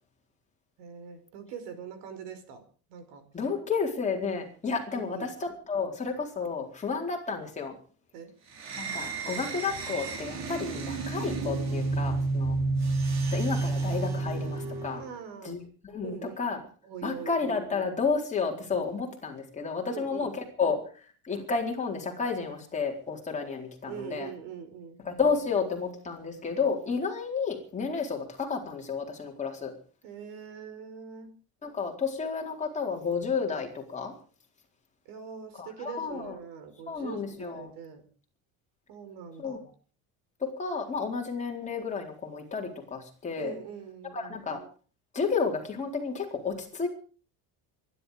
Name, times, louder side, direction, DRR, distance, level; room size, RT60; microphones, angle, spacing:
voice 1, 0.8-2.6 2.9-3.3 4.9-5.3 8.1-8.3 15.0-15.6 16.0-17.4 19.8-20.3 23.9-25.0 30.0-31.3 35.0-38.1 38.9-39.6 43.4-44.4, right 7 dB, 90° right, 10 dB, 5.1 m, -42 dB
voice 2, 3.3-7.7 8.8-12.6 13.3-15.0 15.4-15.6 15.8-16.6 17.0-20.3 20.6-24.3 25.0-29.7 31.6-34.1 35.6-36.3 36.9-37.7 39.4-39.6 40.4-43.5 44.1-44.6 45.1-46.9, left 5 dB, 20° left, 1 dB, 4.2 m, -31 dB
sound 1, 8.5-15.1, right 3 dB, 45° right, 3.5 m, -30 dB
24.0 x 11.5 x 5.1 m, 0.39 s
cardioid pair, 170°, 39 cm